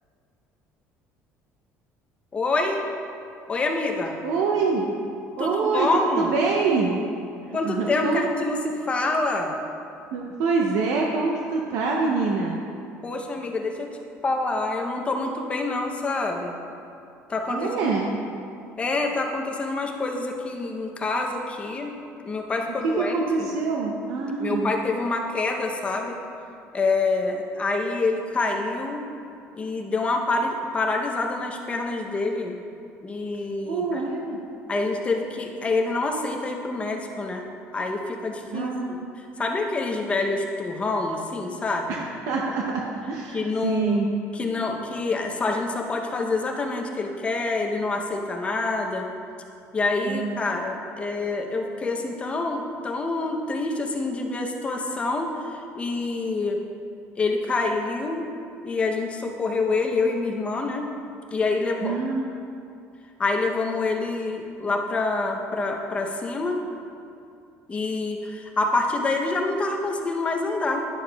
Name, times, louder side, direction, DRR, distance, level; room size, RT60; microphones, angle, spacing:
voice 1, 2.3-2.8 3.5-4.2 5.4-6.3 7.5-9.6 13.0-16.6 17.3-18.2 18.8-21.9 22.2-23.5 24.4-26.2 26.7-29.0 29.5-32.6 33.0-34.0 34.7-37.5 37.7-38.7 39.2-42.0 43.3-44.0 44.3-49.1 49.7-56.6 57.2-58.3 58.6-60.9 61.3-62.0 63.2-66.6 67.7-70.9, left 3 dB, 20° left, 2 dB, 0.7 m, -26 dB
voice 2, 4.2-4.9 5.4-7.0 7.6-8.2 10.1-12.6 17.5-18.1 22.8-24.7 33.6-34.4 38.5-39.1 41.9-44.1 50.1-50.4 61.8-62.3, right 4 dB, 75° right, 0 dB, 0.6 m, -25 dB
11.0 x 6.9 x 2.3 m, 2.5 s
cardioid pair, 140°, 6 cm